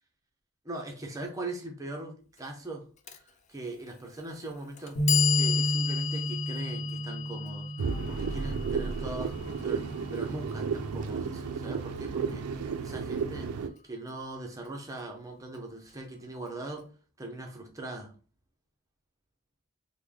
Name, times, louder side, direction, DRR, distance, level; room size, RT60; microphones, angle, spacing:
voice 1, 0.6-2.8 3.1-3.2 3.5-5.0 5.3-16.9 17.2-18.1, right 2 dB, 15° right, 1 dB, 0.6 m, -41 dB
Clock, 3.1-3.2 4.1-4.2 4.8-10.8, left 11 dB, 35° left, 0.3 m, -34 dB
sound 1, 5.0-11.2, right 1 dB, 60° left, 0.8 m, -32 dB
sound 2, 7.8-13.7, right 5 dB, 90° right, 0.4 m, -33 dB
3.2 x 2.2 x 3.7 m, 0.38 s
head